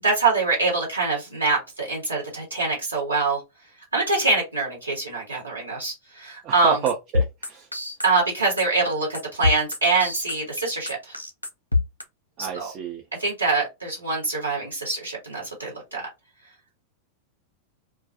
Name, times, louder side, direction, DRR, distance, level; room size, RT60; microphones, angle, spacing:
voice 1, 0.0-3.4 3.9-6.8 8.0-11.1 12.5-12.7 13.2-16.1, right 3 dB, 85° right, 1.0 m, -24 dB
voice 2, 6.4-7.7 12.4-13.0, right 7 dB, 35° right, 0.5 m, -29 dB
sound 1, 6.9-12.0, left 3 dB, 85° left, 0.4 m, -25 dB
2.3 x 2.3 x 2.5 m
figure-of-eight pair, 90°, 0 cm